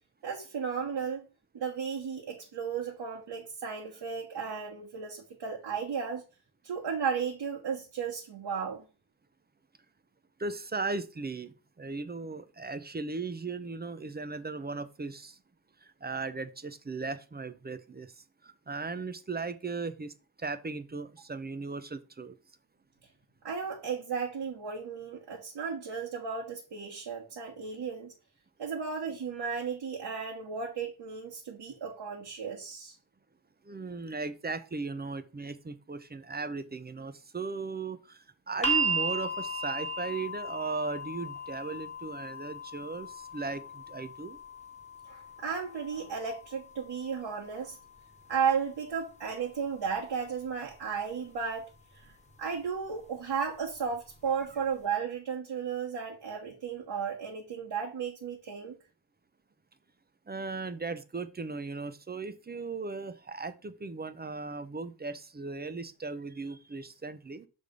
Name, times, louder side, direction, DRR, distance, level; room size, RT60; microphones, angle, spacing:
voice 1, 0.2-1.3 1.5-6.2 6.6-8.8 23.4-28.1 28.6-33.0 45.0-47.8 48.3-52.1 52.4-58.8, right 6 dB, 60° right, 1.4 m, -34 dB
voice 2, 10.4-15.4 15.8-22.4 33.6-44.4 60.3-67.5, right 3 dB, 20° right, 0.5 m, -37 dB
sound 1, 38.6-50.7 51.8-51.9, right 2 dB, 15° left, 1.2 m, -37 dB
6.4 x 3.4 x 5.2 m
cardioid pair, 100°, 47 cm